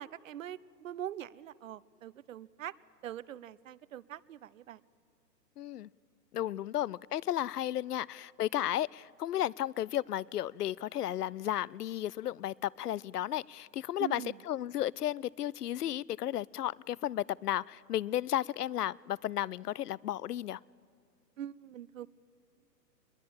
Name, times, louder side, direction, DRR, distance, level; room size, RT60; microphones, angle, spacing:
voice 1, 0.0-2.7 3.0-4.8 14.0-14.4 21.4-22.1, right 11 dB, 55° right, 21 dB, 0.7 m, -43 dB
voice 2, 5.6-5.9 6.3-20.6, left 12 dB, 70° left, 25 dB, 0.5 m, -34 dB
21.5 x 21.0 x 8.6 m, 2.2 s
figure-of-eight pair, 130°, 49 cm